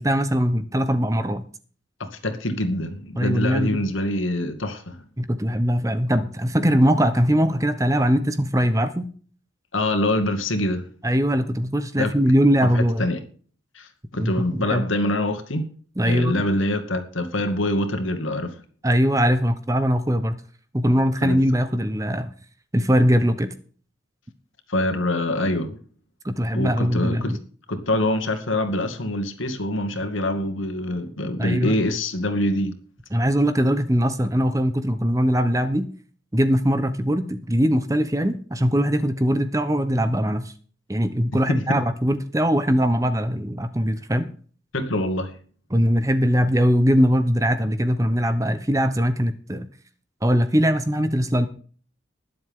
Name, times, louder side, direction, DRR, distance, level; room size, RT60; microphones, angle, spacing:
voice 1, 0.0-1.5 3.2-3.8 5.2-9.1 11.0-13.1 14.2-14.9 16.0-16.4 18.8-20.4 20.7-22.3 22.7-23.5 26.2-27.4 31.4-31.7 33.1-35.8 36.3-40.5 40.9-44.3 45.7-49.7 50.2-51.5, equal, 15° right, 0.9 m, -21 dB
voice 2, 2.1-5.0 9.7-10.9 12.0-12.1 12.7-13.2 13.7-15.7 16.0-18.6 21.2-21.4 24.7-25.8 26.5-27.4 27.7-32.7 41.5-41.8 44.7-45.3, left 1 dB, 80° left, 2.4 m, -25 dB
20.5 x 7.7 x 3.8 m
head